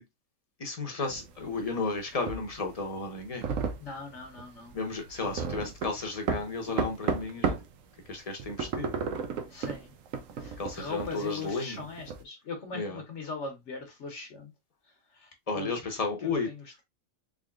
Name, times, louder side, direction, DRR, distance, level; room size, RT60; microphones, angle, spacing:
voice 1, 0.6-3.4 4.7-7.5 8.1-9.0 10.6-11.8 12.7-13.0 15.5-16.5, left 3 dB, 30° left, 0.9 m, -33 dB
sound 1, 1.1-7.8 8.1-12.2, right 6 dB, 75° right, 1.0 m, -34 dB
voice 2, 3.8-4.8 9.5-9.9 10.4-14.5 15.1-15.7 16.2-16.8, left 4 dB, 60° left, 1.3 m, -40 dB
3.7 x 3.4 x 2.3 m
omnidirectional pair, 1.4 m